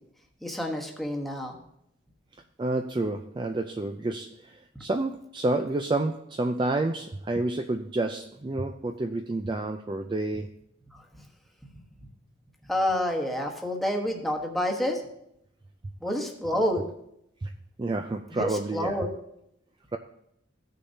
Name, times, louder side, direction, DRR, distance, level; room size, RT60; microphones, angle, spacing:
voice 1, 0.4-1.6 10.9-11.0 11.7-11.8 12.7-15.0 16.0-16.9 18.3-19.1, left 1 dB, ahead, 0 dB, 1.1 m, -28 dB
voice 2, 2.6-10.5 17.4-17.5 17.8-18.9, right 2 dB, 25° right, 6 dB, 0.3 m, -29 dB
15.5 x 6.6 x 2.7 m, 0.79 s
head